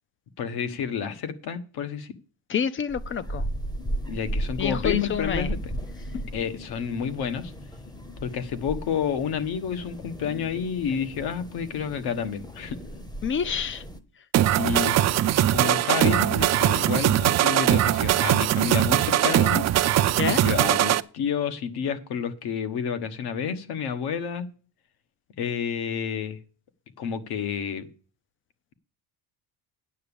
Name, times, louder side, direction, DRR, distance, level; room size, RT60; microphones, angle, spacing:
voice 1, 0.4-2.1 4.1-5.7 6.3-7.5 8.2-12.8 14.5-15.0 15.5-19.7 20.3-24.5 25.4-26.4 27.0-27.9, left 7 dB, 65° left, 1.4 m, -30 dB
voice 2, 2.5-3.4 4.6-5.5 13.2-13.8 20.2-20.4, left 7 dB, 30° left, 0.5 m, -27 dB
sound 1, 2.9-14.0, right 1 dB, 10° left, 0.9 m, -35 dB
sound 2, 14.3-21.0, right 13 dB, 40° right, 0.5 m, -21 dB
9.3 x 7.1 x 6.9 m
cardioid pair, 145°, 41 cm